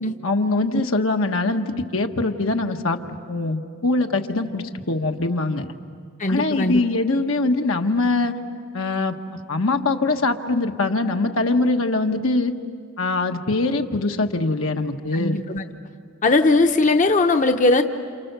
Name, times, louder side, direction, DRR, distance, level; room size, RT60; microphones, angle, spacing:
voice 1, 0.2-3.0 3.3-5.7 6.3-8.3 8.7-9.2 9.5-12.5 13.0-15.4, left 2 dB, 80° left, 4 dB, 1.3 m, -22 dB
voice 2, 6.2-6.8 15.1-15.6 16.2-17.8, left 2 dB, 40° left, 6 dB, 0.8 m, -19 dB
29.5 x 28.5 x 6.8 m, 2.2 s
head